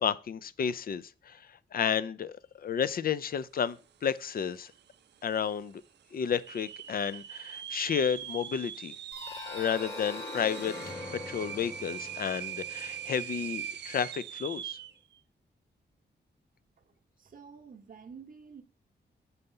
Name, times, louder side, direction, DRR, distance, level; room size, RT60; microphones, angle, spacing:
voice 1, 0.0-4.7 5.2-5.8 6.1-9.0 9.5-10.7 11.3-14.8, left 7 dB, 55° left, 0.4 m, -32 dB
sound 1, 4.1-4.2 4.4-4.9 5.4-5.5 6.3-15.0, right 10 dB, 70° right, 0.4 m, -41 dB
sound 2, 9.1-13.8, left 2 dB, 70° left, 2.2 m, -42 dB
voice 2, 16.8-18.6, right 6 dB, 50° right, 0.8 m, -50 dB
6.7 x 4.2 x 5.4 m
wide cardioid pair, 105°, 19 cm